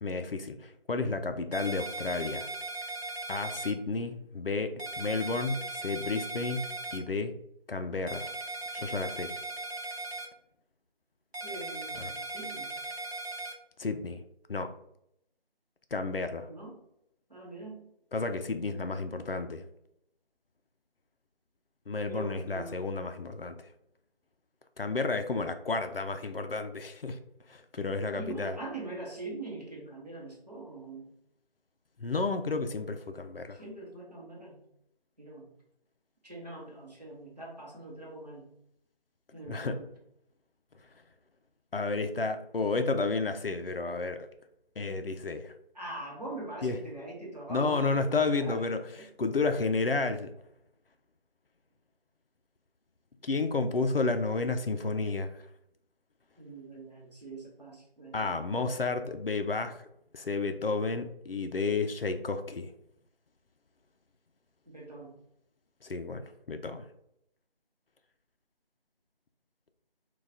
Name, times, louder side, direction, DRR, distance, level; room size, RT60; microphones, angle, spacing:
voice 1, 0.0-2.5 3.3-7.3 7.7-8.3 8.7-9.3 12.0-12.1 13.8-14.2 14.5-14.7 15.9-16.5 18.1-19.6 21.9-23.7 24.8-27.2 27.5-28.6 32.0-33.6 39.5-39.8 41.7-44.3 44.8-45.5 46.6-46.8 47.5-48.8 49.2-50.3 53.2-55.5 58.1-59.9 60.1-62.7 65.8-66.9, left 3 dB, 65° left, 8 dB, 0.4 m, -31 dB
sound 1, 1.5-3.7 4.8-7.0 8.1-10.3 11.3-13.5, right 2 dB, 85° right, 0.8 m, -38 dB
voice 2, 11.4-12.7 16.5-16.8 17.3-17.9 22.1-22.8 28.1-31.1 33.5-34.6 35.2-35.5 36.2-38.5 39.3-39.9 45.7-48.7 48.9-49.1 56.4-58.4 64.7-65.2, right 2 dB, 40° right, -3 dB, 1.1 m, -42 dB
4.2 x 2.3 x 3.5 m, 0.75 s
figure-of-eight pair, 175°, 31 cm